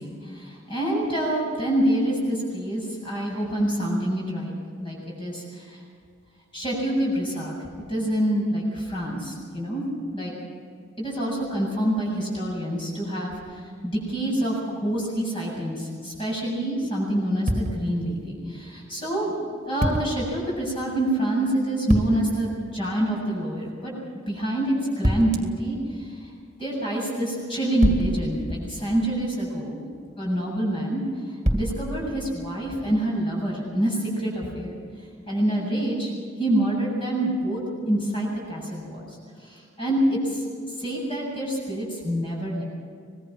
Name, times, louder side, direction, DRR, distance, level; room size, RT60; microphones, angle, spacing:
voice 1, 0.0-4.5 4.8-5.8 6.5-7.5 7.9-9.8 10.1-10.3 11.0-23.9 24.3-26.1 26.6-29.8 30.2-31.0 31.5-34.7 35.3-36.1 36.4-39.1 39.4-40.4 40.8-42.6, right 1 dB, 25° left, -4 dB, 7.7 m, -26 dB
sound 1, 17.5-18.2 19.8-20.4 21.9-22.5 25.0-25.6 27.8-29.2 31.4-32.3, equal, 35° right, 2.0 m, -27 dB
24.5 x 21.0 x 5.9 m, 2.2 s
head